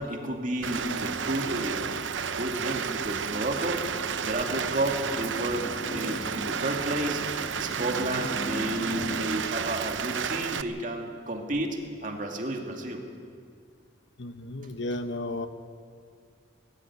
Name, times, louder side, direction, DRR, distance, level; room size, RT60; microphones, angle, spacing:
voice 1, 0.0-1.9 2.2-3.8 4.2-7.2 7.6-11.8 12.0-13.0, right 1 dB, 45° right, 2 dB, 2.5 m, -31 dB
Rain, 0.6-10.6, right 6 dB, 75° right, 0.7 m, -32 dB
sound 1, 3.3-9.2, left 1 dB, 30° left, 1.9 m, -40 dB
voice 2, 14.2-15.5, left 2 dB, 70° left, 10 dB, 1.1 m, -34 dB
19.5 x 14.5 x 9.7 m, 2.2 s
head